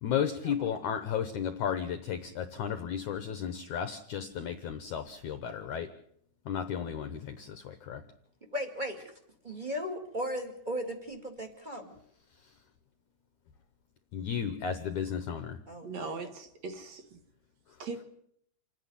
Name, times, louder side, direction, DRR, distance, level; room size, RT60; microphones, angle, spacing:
voice 1, 0.0-5.9 6.5-8.0 14.1-15.6, left 8 dB, 70° left, 1.9 m, -34 dB
voice 2, 8.5-9.1 9.4-12.0 15.7-16.3, equal, 20° right, 1.4 m, -37 dB
voice 3, 15.8-17.2 17.8-18.0, right 4 dB, 55° right, 2.2 m, -40 dB
27.5 x 9.7 x 9.8 m
omnidirectional pair, 4.5 m